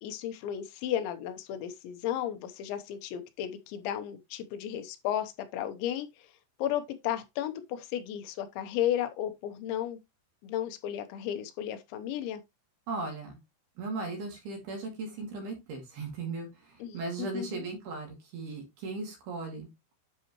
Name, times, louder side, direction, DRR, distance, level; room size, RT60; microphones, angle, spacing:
voice 1, 0.0-6.3 6.6-10.0 10.4-12.4 16.8-17.6, left 11 dB, 80° left, 3.1 m, -34 dB
voice 2, 12.9-13.4 13.8-19.7, right 3 dB, 60° right, 3.9 m, -37 dB
10.5 x 4.9 x 3.0 m
omnidirectional pair, 5.4 m